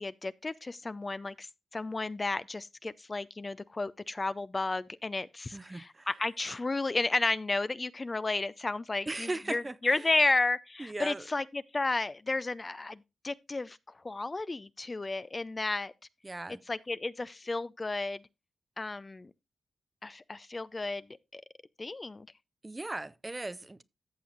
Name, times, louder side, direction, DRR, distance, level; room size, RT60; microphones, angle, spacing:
voice 1, 0.0-1.5 1.7-13.8 14.0-15.9 16.7-18.2 18.8-19.3 20.0-21.1 21.3-21.4 21.8-22.3, left 3 dB, 30° left, 0.4 m, -32 dB
voice 2, 5.5-6.1 9.1-10.1 10.8-11.3 16.2-16.6 22.6-23.8, right 2 dB, 25° right, 0.6 m, -38 dB
14.0 x 7.1 x 2.5 m
cardioid pair, 60°, 0 cm